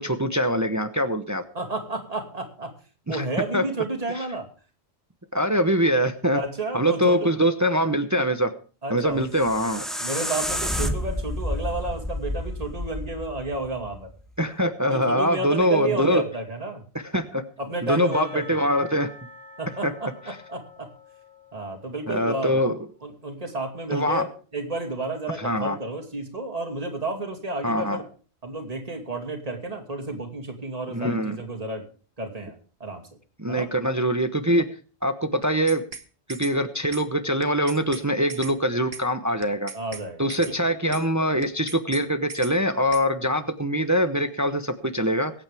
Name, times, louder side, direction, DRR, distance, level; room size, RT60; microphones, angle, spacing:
voice 1, 0.0-1.4 3.1-3.2 3.5-3.6 4.1-4.3 5.3-6.4 6.7-8.5 8.9-9.9 14.4-16.2 17.1-17.4 17.8-19.1 19.8-19.9 20.3-20.4 22.1-22.8 23.9-24.3 25.4-25.8 27.6-28.0 30.9-31.4 33.4-34.7 35.0-35.8 36.3-39.7 40.2-45.3, equal, 15° right, 9 dB, 0.9 m, -23 dB
voice 2, 1.5-2.8 3.1-4.5 6.3-7.3 8.8-9.2 10.0-14.1 14.9-16.8 17.6-18.6 19.6-20.9 21.5-22.5 23.0-28.0 28.4-31.8 32.2-32.5 32.8-33.1 33.5-33.7 39.7-40.5, right 2 dB, 35° right, 3 dB, 2.6 m, -31 dB
sound 1, 9.1-14.2, equal, ahead, 1.3 m, -30 dB
Percussion / Church bell, 18.1-22.7, left 1 dB, 55° left, 3.4 m, -47 dB
sound 2, 35.4-36.0 36.3-36.5 36.9-37.0 37.4-38.0 38.3-38.5 38.9-39.0 39.4-40.0 40.3-40.5 40.9-41.0 41.4-42.0 42.3-42.5 42.9-43.0, right 5 dB, 65° right, 1.6 m, -38 dB
24.0 x 8.8 x 3.5 m, 0.39 s
omnidirectional pair, 1.1 m